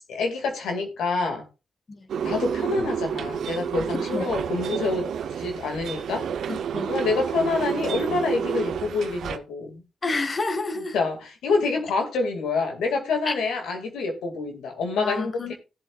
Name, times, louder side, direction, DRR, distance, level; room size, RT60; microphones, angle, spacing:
voice 1, 0.1-1.4 2.2-5.1 5.4-6.2 6.9-9.8 10.8-15.5, left 3 dB, 85° left, 2.2 m, -27 dB
sound 1, 2.1-9.4, right 8 dB, 75° right, 0.7 m, -30 dB
voice 2, 3.9-4.2 6.5-6.9 10.0-10.9 13.3-13.4 15.0-15.5, left 3 dB, 40° left, 1.8 m, -29 dB
17.0 x 7.6 x 2.4 m
supercardioid pair, 60°, 0 cm